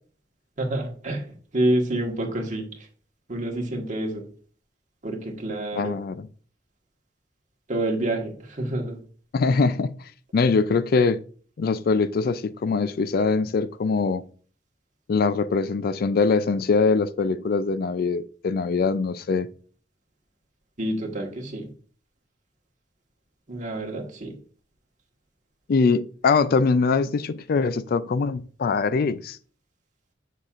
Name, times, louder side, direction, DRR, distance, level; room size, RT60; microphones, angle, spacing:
voice 1, 0.6-2.6 3.3-4.2 5.0-6.0 7.7-9.0 20.8-21.7 23.5-24.3, right 1 dB, 40° right, 1.5 m, -28 dB
voice 2, 5.7-6.3 9.3-9.9 10.3-11.2 11.6-14.2 15.1-19.5 25.7-29.4, left 4 dB, 55° left, 0.4 m, -22 dB
7.2 x 6.5 x 2.5 m
head